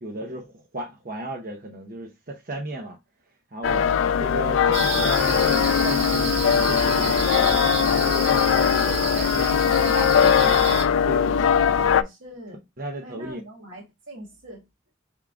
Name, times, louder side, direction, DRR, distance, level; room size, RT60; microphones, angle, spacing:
voice 1, 0.0-3.0 3.5-3.9 4.2-7.2 7.6-10.6 11.0-11.5 12.8-13.4, right 1 dB, 45° right, 0.7 m, -35 dB
sound 1, 3.6-12.0, left 8 dB, 80° left, 0.3 m, -20 dB
voice 2, 3.7-4.2 11.5-12.6 13.0-14.6, right 1 dB, 85° right, 1.7 m, -42 dB
sound 2, 4.7-10.8, right 3 dB, 65° right, 1.7 m, -29 dB
4.7 x 3.6 x 2.4 m
head